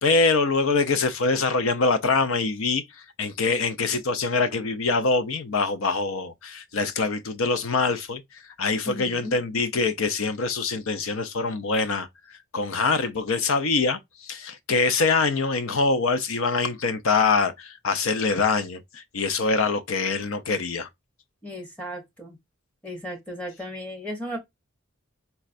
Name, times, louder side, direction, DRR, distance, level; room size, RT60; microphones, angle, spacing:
voice 1, 0.0-2.8 3.2-20.9, left 4 dB, 75° left, 0.5 m, -24 dB
voice 2, 8.9-9.4 21.4-22.4 22.8-24.4, equal, 5° left, 0.7 m, -35 dB
4.1 x 2.3 x 2.4 m
head